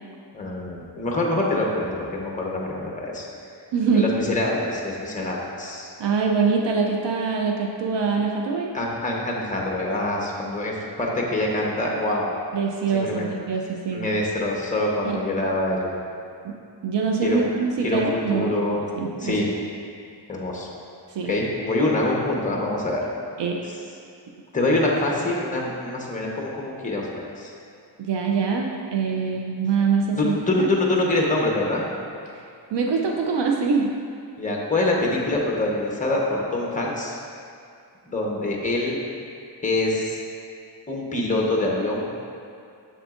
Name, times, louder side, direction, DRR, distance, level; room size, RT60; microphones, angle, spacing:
voice 1, 0.3-3.3 3.9-5.9 8.7-12.3 12.9-13.3 13.9-16.0 17.2-18.8 19.2-19.5 20.3-20.7 21.2-23.1 23.7-23.8 24.5-27.5 30.1-31.9 34.4-37.2 38.1-39.0 39.6-40.2 40.9-42.1, left 2 dB, 15° left, -2 dB, 0.9 m, -25 dB
voice 2, 3.7-4.1 6.0-8.7 12.5-14.0 15.0-15.2 16.4-16.6 16.8-18.6 18.9-19.3 21.1-21.3 23.4-23.6 28.0-30.7 32.7-33.9, right 5 dB, 70° right, 1 dB, 0.6 m, -24 dB
7.2 x 6.9 x 2.5 m, 2.4 s
wide cardioid pair, 140°, 44 cm